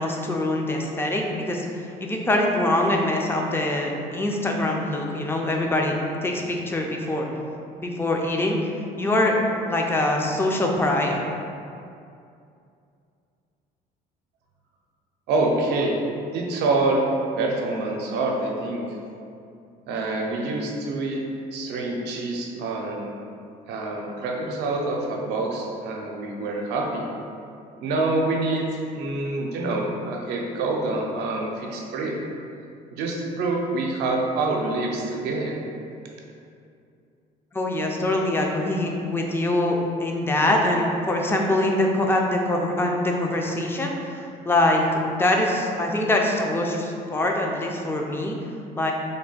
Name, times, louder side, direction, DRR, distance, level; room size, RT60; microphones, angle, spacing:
voice 1, 0.0-7.3 7.8-8.6 9.0-9.4 9.6-11.2 37.5-44.9 45.2-48.4 48.8-48.9, left 1 dB, 15° left, 1 dB, 0.4 m, -24 dB
voice 2, 15.3-16.0 16.3-17.0 17.4-18.8 19.9-21.2 21.5-23.2 23.7-27.1 27.8-28.7 28.9-32.1 32.9-35.6, right 2 dB, 85° right, -1 dB, 0.6 m, -26 dB
3.3 x 2.2 x 4.0 m, 2.5 s
cardioid pair, 110°, 17 cm